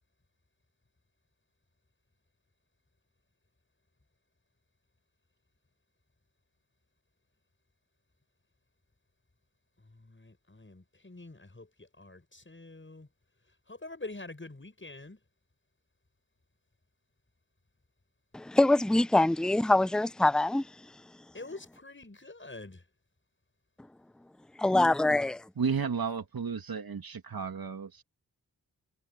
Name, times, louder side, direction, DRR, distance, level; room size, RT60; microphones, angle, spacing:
voice 1, 9.9-13.1 13.7-15.2 21.3-22.8, left 2 dB, 30° left, 7.2 m, -46 dB
voice 2, 18.3-20.6 24.6-25.4, left 2 dB, ahead, 0.7 m, -24 dB
voice 3, 25.6-28.0, right 6 dB, 65° right, 2.5 m, -33 dB
cardioid pair, 45°, 38 cm